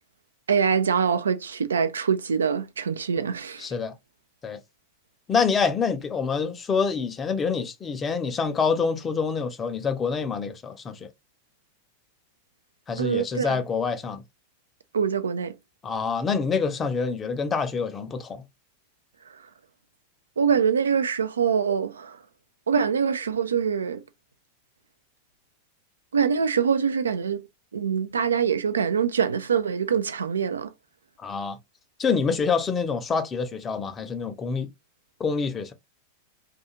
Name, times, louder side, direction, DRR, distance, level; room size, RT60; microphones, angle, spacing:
voice 1, 0.5-3.7 13.0-13.6 14.9-15.5 20.4-22.2 22.7-24.0 26.1-27.5 27.7-30.7, right 7 dB, 70° right, 0.3 m, -24 dB
voice 2, 3.6-3.9 4.4-4.6 5.3-11.1 12.9-14.2 15.8-18.4 31.2-31.6 32.0-34.7 35.2-35.7, left 5 dB, 20° left, 0.5 m, -26 dB
2.4 x 2.4 x 2.8 m
figure-of-eight pair, 90°, 0 cm